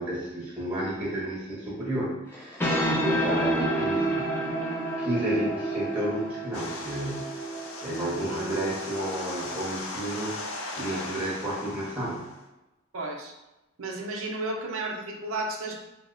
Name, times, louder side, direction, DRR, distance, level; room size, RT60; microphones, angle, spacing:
voice 1, 0.0-4.7 5.0-7.3 7.8-12.3, right 1 dB, 5° right, -7 dB, 0.8 m, -31 dB
sound 1, 2.3-9.5, right 1 dB, 10° left, 0.4 m, -30 dB
sound 2, 6.5-12.4, left 2 dB, 70° left, 0.4 m, -38 dB
voice 2, 12.9-13.3 13.8-15.7, right 2 dB, 75° right, 0 dB, 0.5 m, -32 dB
2.8 x 2.0 x 3.7 m, 0.99 s
head